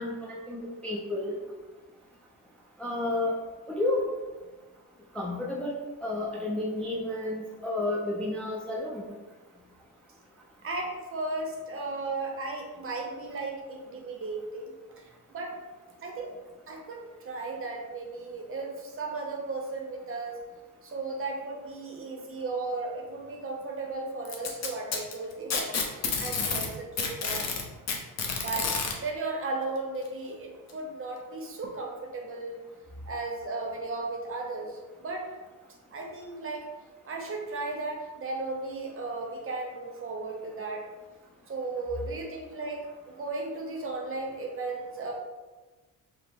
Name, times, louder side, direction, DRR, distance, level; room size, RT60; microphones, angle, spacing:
voice 1, 0.0-1.3 2.8-3.4 3.7-4.1 5.1-9.0, left 2 dB, 5° left, -3 dB, 0.3 m, -31 dB
voice 2, 10.6-15.0 15.3-15.6 16.0-16.3 16.7-20.4 20.8-27.5 28.3-28.7 29.0-32.7 33.1-35.3 35.9-36.7 37.0-40.9 41.5-45.1, right 3 dB, 40° right, 1 dB, 0.7 m, -35 dB
Packing tape duct tape, 24.2-26.7 27.0-28.9 30.0-30.1 30.7-30.8 31.6-31.7, left 5 dB, 50° left, 0.7 m, -29 dB
4.6 x 2.0 x 3.4 m, 1.2 s
cardioid pair, 135°, 34 cm